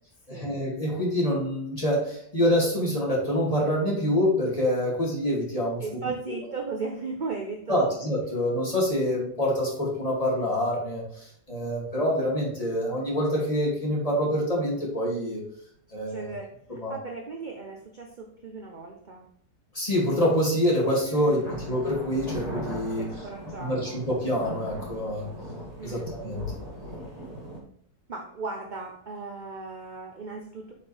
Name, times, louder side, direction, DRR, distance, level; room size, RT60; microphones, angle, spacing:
voice 1, 0.3-5.8 6.3-6.4 7.7-15.4 15.9-16.3 16.7-16.9 19.7-23.1 23.6-25.2 25.8-26.4, equal, 20° left, -5 dB, 2.7 m, -26 dB
voice 2, 5.8-8.0 15.9-19.3 21.1-21.6 22.9-24.0 25.8-26.1 26.8-27.3 28.1-30.7, right 4 dB, 40° right, 2 dB, 0.7 m, -37 dB
sound 1, 20.3-20.4 21.1-27.6, equal, 20° right, 2.4 m, -39 dB
8.2 x 5.4 x 3.5 m, 0.66 s
omnidirectional pair, 1.9 m